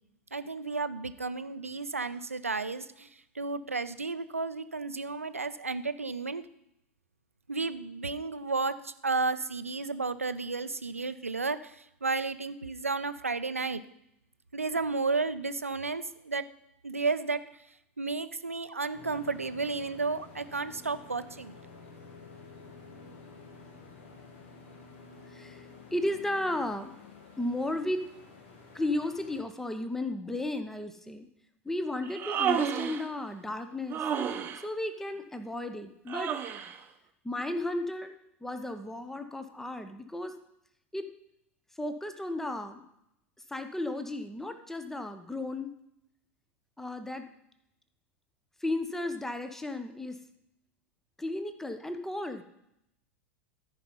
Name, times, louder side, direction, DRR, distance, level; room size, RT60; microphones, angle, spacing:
voice 1, 0.3-3.1 3.3-6.4 7.5-13.8 14.5-16.4 16.8-17.4 18.0-21.5, right 4 dB, 85° right, 13 dB, 0.5 m, -32 dB
sound 1, 18.9-29.4, left 4 dB, 60° left, 1.7 m, -50 dB
voice 2, 25.3-26.9 27.4-28.1 28.7-31.3 31.6-34.0 34.6-36.3 37.2-38.1 38.4-40.3 40.9-41.1 41.8-42.9 43.5-45.7 46.8-47.3 48.6-50.2 51.2-52.4, left 1 dB, 5° left, 9 dB, 0.8 m, -34 dB
Human voice, 32.0-33.1 33.9-34.6 36.1-36.8, right 8 dB, 30° right, 0.8 m, -31 dB
13.5 x 5.3 x 5.5 m, 0.79 s
figure-of-eight pair, 85°, 7 cm